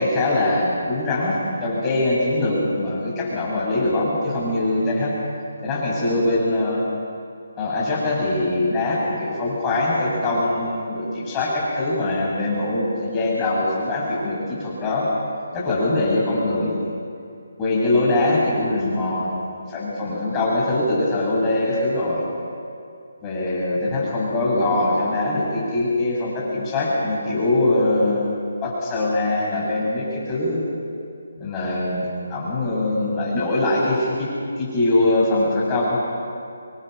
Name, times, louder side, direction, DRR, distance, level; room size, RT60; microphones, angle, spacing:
voice 1, 0.0-5.1 5.6-6.8 7.6-15.1 15.5-16.8 17.6-22.2 23.2-30.6 31.4-34.3 34.6-36.0, left 2 dB, 20° left, -5 dB, 7.4 m, -22 dB
26.5 x 21.0 x 6.6 m, 2.4 s
figure-of-eight pair, 150°, 0 cm